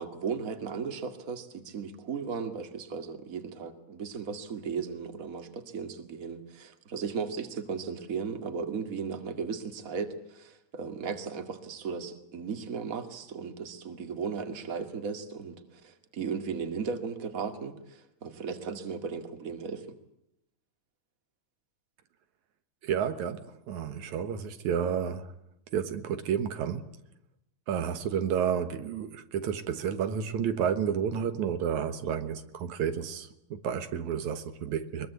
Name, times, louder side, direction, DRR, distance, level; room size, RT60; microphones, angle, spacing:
voice 1, 0.0-20.0, right 5 dB, 30° right, 2.3 m, -36 dB
voice 2, 22.8-25.3 25.7-26.9 27.7-35.1, right 8 dB, 80° right, 2.7 m, -31 dB
23.0 x 22.5 x 8.2 m
omnidirectional pair, 3.3 m